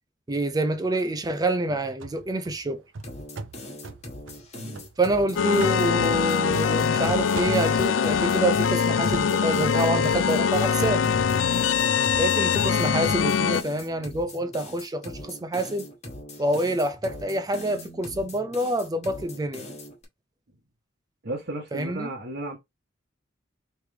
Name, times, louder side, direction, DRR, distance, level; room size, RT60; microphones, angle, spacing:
voice 1, 0.3-2.8 5.0-11.1 12.2-15.9 16.4-19.6 21.7-22.1, right 1 dB, 20° right, 0.5 m, -27 dB
sound 1, 2.0-5.3 5.6-7.1 7.4-11.5, right 4 dB, 80° right, 0.6 m, -42 dB
sound 2, 3.0-20.0, left 1 dB, 35° left, 1.2 m, -41 dB
sound 3, 5.4-13.6, left 6 dB, 75° left, 0.4 m, -23 dB
voice 2, 21.2-22.6, right 1 dB, 60° right, 1.0 m, -34 dB
3.2 x 3.2 x 3.4 m
head